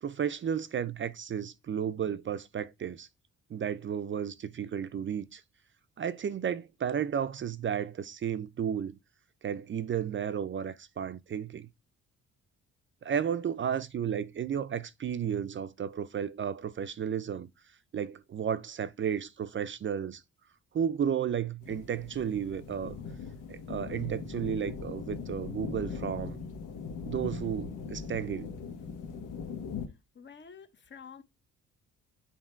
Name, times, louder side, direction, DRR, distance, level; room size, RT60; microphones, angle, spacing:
voice 1, 0.0-3.1 3.5-5.4 6.0-9.0 9.4-11.7 13.0-17.5 17.9-20.2 20.7-23.0 23.5-26.4 27.1-28.5, right 8 dB, 40° right, 0.6 m, -33 dB
sound 1, 21.6-29.9, left 5 dB, 85° left, 1.4 m, -40 dB
voice 2, 29.9-31.2, left 6 dB, 40° left, 1.0 m, -50 dB
7.3 x 2.9 x 4.5 m
cardioid pair, 90°, 30 cm